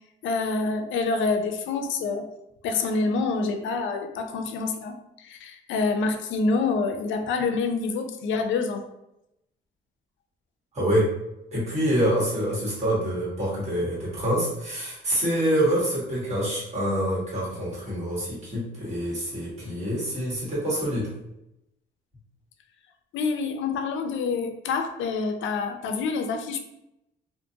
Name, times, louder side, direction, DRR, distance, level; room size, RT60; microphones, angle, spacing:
voice 1, 0.2-2.3 2.6-5.0 5.2-8.9 23.1-26.6, left 4 dB, 75° left, 6 dB, 0.5 m, -27 dB
voice 2, 10.7-11.1 11.5-21.1, right 1 dB, 35° right, -6 dB, 1.4 m, -26 dB
2.6 x 2.4 x 2.7 m, 0.86 s
cardioid pair, 90°, 20 cm